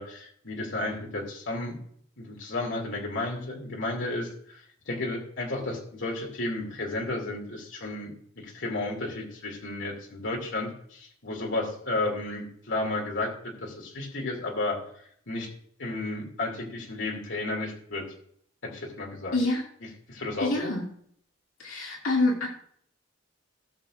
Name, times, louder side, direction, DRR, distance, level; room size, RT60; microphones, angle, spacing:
voice 1, 0.0-1.8 2.2-4.6 4.9-8.1 8.4-13.3 13.6-14.8 15.3-15.5 15.8-18.0 18.6-19.4 20.1-20.7, left 2 dB, 65° left, 0 dB, 2.5 m, -32 dB
voice 2, 19.3-19.6 20.4-20.9 21.6-22.5, left 2 dB, 80° left, -2 dB, 2.4 m, -26 dB
18.0 x 6.7 x 2.5 m, 0.65 s
head